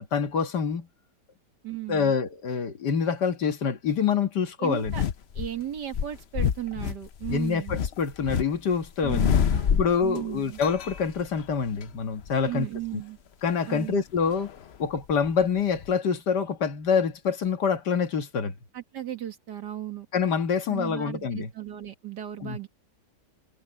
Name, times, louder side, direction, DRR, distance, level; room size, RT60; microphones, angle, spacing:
voice 1, 0.1-0.9 1.9-4.9 7.3-9.3 9.7-12.7 13.4-14.5 14.8-18.5 20.1-21.5 22.4-22.6, left 6 dB, 80° left, 2.2 m, -26 dB
voice 2, 1.6-2.1 4.6-5.0 5.3-7.8 9.0-10.6 12.4-13.2 13.7-14.0 18.7-20.1 20.7-22.7, right 12 dB, 85° right, 2.5 m, -36 dB
sound 1, 4.8-5.5 5.9-8.5 8.7-10.2 10.6-11.8 12.2-12.5 14.2-15.4 15.8-15.9, left 8 dB, 50° left, 0.8 m, -27 dB
omnidirectional pair, 1.8 m